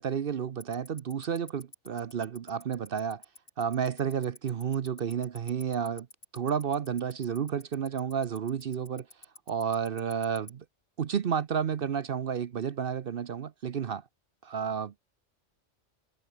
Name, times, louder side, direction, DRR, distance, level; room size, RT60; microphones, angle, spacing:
voice 1, 0.0-3.2 3.6-6.1 6.3-9.1 9.5-10.6 11.0-14.0 14.4-14.9, right 7 dB, 55° right, 0.8 m, -31 dB
Tick-tock, 0.6-10.5, left 2 dB, 70° left, 5.5 m, -47 dB
omnidirectional pair, 1.3 m